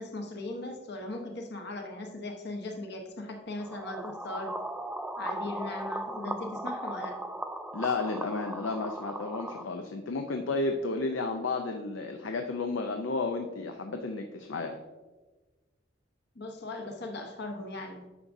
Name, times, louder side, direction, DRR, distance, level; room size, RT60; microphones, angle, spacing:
voice 1, 0.0-4.5 5.2-7.2 16.3-18.1, left 2 dB, 60° left, 4 dB, 1.0 m, -38 dB
sound 1, 3.6-9.6, right 1 dB, 5° right, 0.3 m, -37 dB
voice 2, 7.7-14.8, left 3 dB, 75° left, 5 dB, 0.5 m, -32 dB
9.6 x 6.0 x 2.7 m, 1.2 s
head